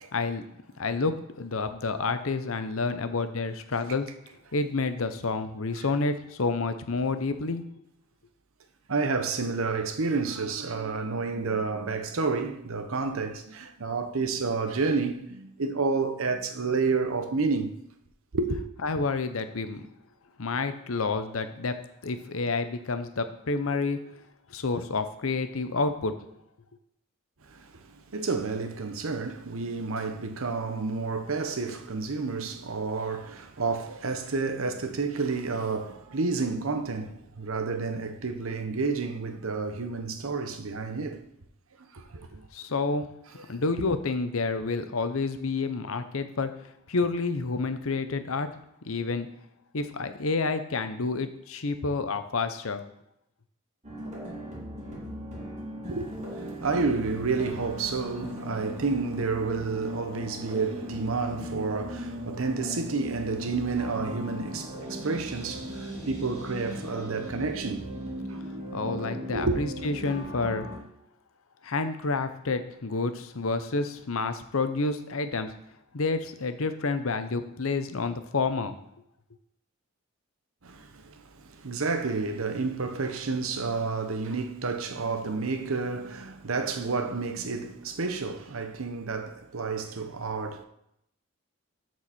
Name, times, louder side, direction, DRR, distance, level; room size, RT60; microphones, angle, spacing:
voice 1, 0.1-0.4 0.8-4.1 4.5-7.6 18.8-19.8 20.4-21.7 22.0-24.0 24.5-26.1 42.5-43.1 43.5-46.5 46.9-48.5 48.8-49.3 49.7-52.8 68.7-70.7 71.6-75.5 75.9-78.7, left 3 dB, 70° left, 0.8 m, -29 dB
voice 2, 8.9-17.8 18.3-18.6 27.4-41.2 41.8-42.4 55.8-67.9 68.3-68.4 69.3-69.6 80.6-90.6, right 4 dB, 70° right, 0.9 m, -30 dB
sound 1, 53.8-70.8, equal, 35° right, 2.4 m, -38 dB
13.0 x 4.7 x 4.3 m
head